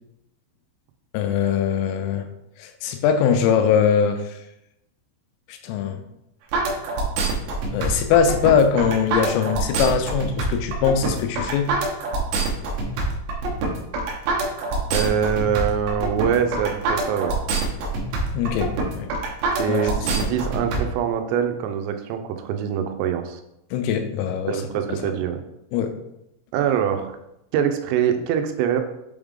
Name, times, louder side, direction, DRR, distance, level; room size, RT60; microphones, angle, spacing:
voice 1, 1.1-2.3 2.6-4.3 5.5-6.0 7.7-11.7 18.3-19.1 19.7-20.3 23.7-24.6 25.7-25.9, left 7 dB, 85° left, 7 dB, 3.3 m, -21 dB
sound 1, 6.5-20.8, right 3 dB, 70° right, 2.7 m, -25 dB
voice 2, 14.9-17.4 19.6-23.4 24.5-25.4 26.5-27.2 27.5-28.8, right 8 dB, 90° right, 6 dB, 3.3 m, -24 dB
7.8 x 3.5 x 3.6 m, 0.84 s
omnidirectional pair, 5.8 m